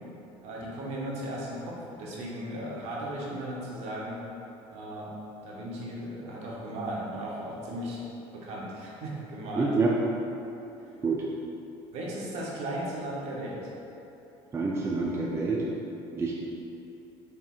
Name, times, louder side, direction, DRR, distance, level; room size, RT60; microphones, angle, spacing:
voice 1, 0.4-4.2 4.7-5.1 5.4-8.0 8.3-9.7 11.9-13.7, right 1 dB, 65° right, -4 dB, 0.9 m, -36 dB
voice 2, 9.6-9.9 11.0-11.2 14.5-15.6 16.1-16.4, right 3 dB, 20° right, -3 dB, 0.4 m, -27 dB
4.5 x 3.4 x 2.4 m, 2.9 s
supercardioid pair, 95°, 12 cm